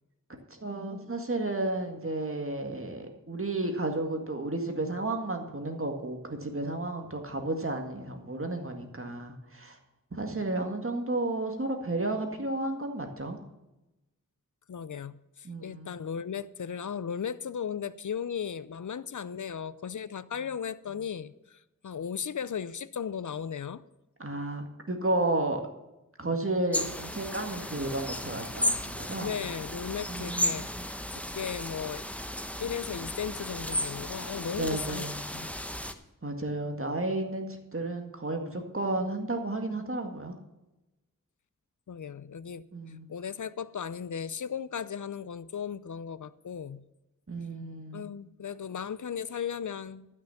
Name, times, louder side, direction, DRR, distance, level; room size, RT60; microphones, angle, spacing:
voice 1, 0.3-9.8 10.1-13.4 15.4-15.9 24.2-25.6 26.2-29.3 30.1-30.9 34.6-35.2 36.2-40.4 42.7-43.1 47.3-48.1, right 2 dB, 40° right, 4 dB, 1.9 m, -32 dB
voice 2, 14.7-23.8 29.2-30.7 31.1-32.0 32.6-35.1 35.3-35.5 41.9-42.7 43.1-46.8 47.9-50.1, left 7 dB, 65° left, 17 dB, 0.6 m, -36 dB
sound 1, 26.7-35.9, left 1 dB, 5° left, 0.9 m, -34 dB
12.5 x 6.2 x 7.1 m, 0.98 s
cardioid pair, 40°, 33 cm